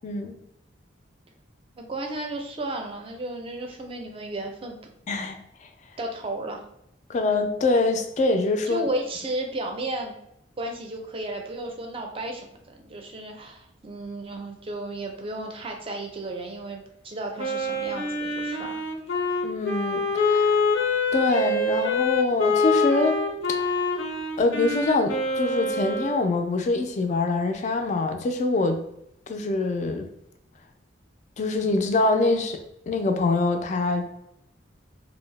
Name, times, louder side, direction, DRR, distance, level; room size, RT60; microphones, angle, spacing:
voice 1, 0.0-0.4 5.1-5.4 5.6-5.7 7.1-8.9 19.4-20.6 21.1-23.2 23.6-23.7 24.4-28.8 29.3-30.1 31.4-34.3, left 3 dB, 40° left, 6 dB, 0.3 m, -24 dB
voice 2, 1.8-4.8 6.0-6.6 8.7-10.2 10.6-18.7, right 2 dB, 30° right, 2 dB, 0.4 m, -33 dB
Wind instrument woodwind instrument, 17.4-26.2, left 3 dB, 90° left, 0.6 m, -25 dB
2.6 x 2.0 x 3.1 m, 0.78 s
head